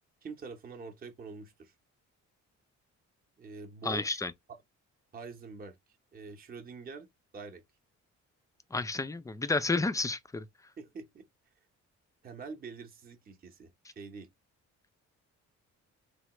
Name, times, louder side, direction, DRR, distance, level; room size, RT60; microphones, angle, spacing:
voice 1, 0.2-1.7 3.4-4.2 5.1-5.8 6.1-7.1 7.3-7.6 10.8-11.3 12.2-14.3, right 4 dB, 30° right, 0.7 m, -45 dB
voice 2, 3.8-4.3 8.7-10.5, left 3 dB, 10° left, 0.3 m, -31 dB
3.2 x 2.2 x 2.9 m
cardioid pair, 90°, 30 cm